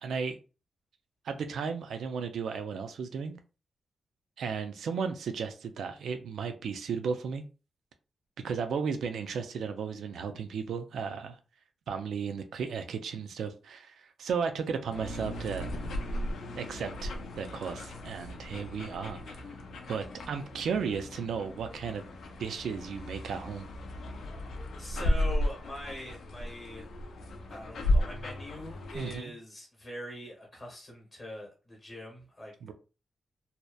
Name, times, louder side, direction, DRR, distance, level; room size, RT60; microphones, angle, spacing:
voice 1, 0.0-0.4 1.2-3.3 4.4-7.4 8.4-11.4 11.9-15.7 16.5-19.4 19.9-22.0 22.4-23.7 28.9-29.3 32.6-32.7, right 6 dB, 80° right, 8 dB, 0.3 m, -34 dB
sound 1, 14.9-29.2, left 1 dB, 80° left, 0.4 m, -35 dB
voice 2, 24.8-26.9 27.5-32.7, left 1 dB, 25° left, -3 dB, 0.8 m, -43 dB
2.7 x 2.1 x 2.2 m, 0.33 s
wide cardioid pair, 170°, 0 cm